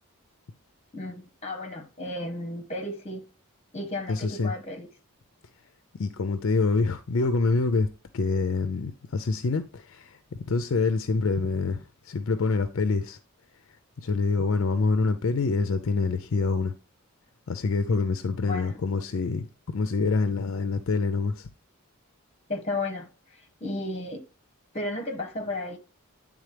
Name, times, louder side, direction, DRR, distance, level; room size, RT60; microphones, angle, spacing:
voice 1, 0.9-3.2 3.7-4.9 18.4-18.8 22.5-23.1 23.6-24.2 24.7-25.8, left 2 dB, 30° left, 1.1 m, -33 dB
voice 2, 4.1-4.5 5.9-7.9 8.1-10.2 10.5-13.2 14.0-16.7 17.5-21.5, left 3 dB, 60° left, 0.5 m, -26 dB
9.4 x 3.7 x 3.3 m
head